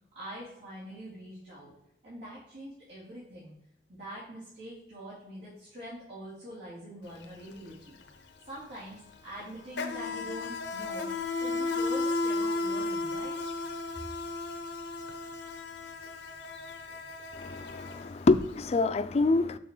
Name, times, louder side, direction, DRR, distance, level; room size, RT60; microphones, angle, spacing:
voice 1, 0.1-1.7 2.0-3.5 3.9-8.0 8.5-11.1 11.4-13.4, equal, 90° right, 2.8 m, -44 dB
Insect, 7.1-7.3 7.5-18.5, left 3 dB, 90° left, 0.8 m, -34 dB
voice 2, 17.3-19.6, left 3 dB, 35° left, 0.4 m, -26 dB
6.9 x 4.8 x 3.8 m
head